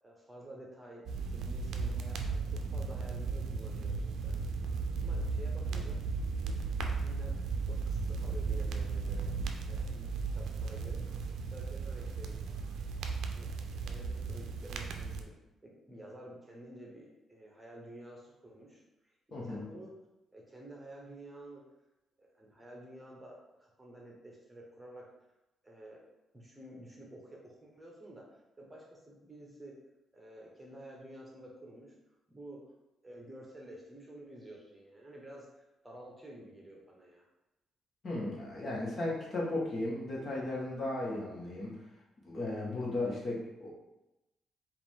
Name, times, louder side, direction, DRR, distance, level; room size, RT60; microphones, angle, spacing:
voice 1, 0.0-1.0 1.3-4.4 5.0-6.0 6.4-6.6 6.9-9.3 9.6-11.2 11.5-12.4 13.3-15.3 15.6-19.9 20.3-21.6 22.4-25.1 25.6-26.0 26.3-29.8 30.1-31.9 32.3-32.6 33.0-37.3, right 1 dB, 15° right, -2 dB, 1.0 m, -51 dB
sound 1, 1.1-15.2, right 4 dB, 75° right, 0.5 m, -35 dB
voice 2, 19.3-19.6 38.0-41.8 42.2-43.7, left 2 dB, 45° left, -4 dB, 1.4 m, -35 dB
4.7 x 2.6 x 3.6 m, 0.95 s
cardioid pair, 90°, 0 cm